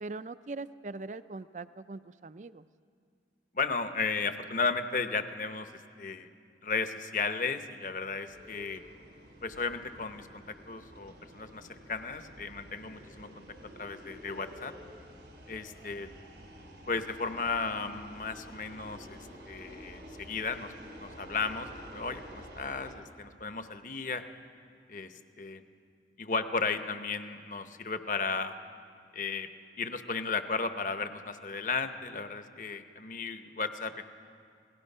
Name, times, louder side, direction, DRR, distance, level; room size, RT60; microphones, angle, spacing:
voice 1, 0.0-2.6, right 3 dB, 40° right, 14 dB, 0.4 m, -41 dB
voice 2, 3.5-6.3 6.6-8.8 9.4-13.4 13.8-14.7 15.5-16.1 16.9-19.2 19.5-24.2 24.9-25.6 26.2-28.6 29.1-29.5 29.8-34.0, left 4 dB, 45° left, 9 dB, 1.0 m, -34 dB
sound 1, 8.3-22.9, equal, 85° right, 3.5 m, -50 dB
29.0 x 18.0 x 5.5 m, 2.3 s
head